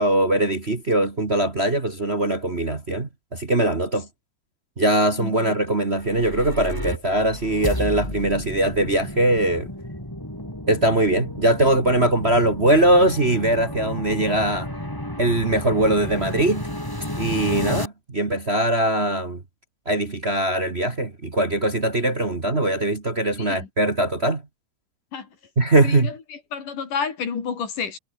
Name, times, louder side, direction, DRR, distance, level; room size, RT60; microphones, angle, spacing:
voice 1, 0.0-4.1 4.8-9.7 10.7-14.7 15.2-16.6 17.2-19.4 19.9-24.4 25.6-26.1, right 1 dB, 25° right, 1.7 m, -21 dB
voice 2, 5.2-5.5 23.4-23.7 25.1-25.3 25.8-26.2 26.5-28.0, left 6 dB, 90° left, 5.3 m, -30 dB
sound 1, 5.8-17.9, left 1 dB, 5° left, 5.5 m, -32 dB
omnidirectional pair, 3.6 m